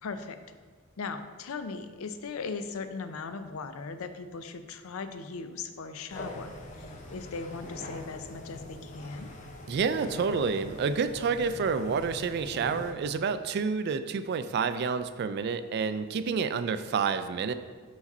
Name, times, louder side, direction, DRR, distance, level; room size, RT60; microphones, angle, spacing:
voice 1, 0.0-0.4 1.0-9.3, left 4 dB, 70° left, 9 dB, 0.4 m, -38 dB
sound 1, 6.1-12.9, left 1 dB, 35° left, 0.7 m, -43 dB
voice 2, 9.7-17.5, right 5 dB, 50° right, 11 dB, 0.3 m, -29 dB
4.8 x 4.1 x 5.3 m, 1.5 s
head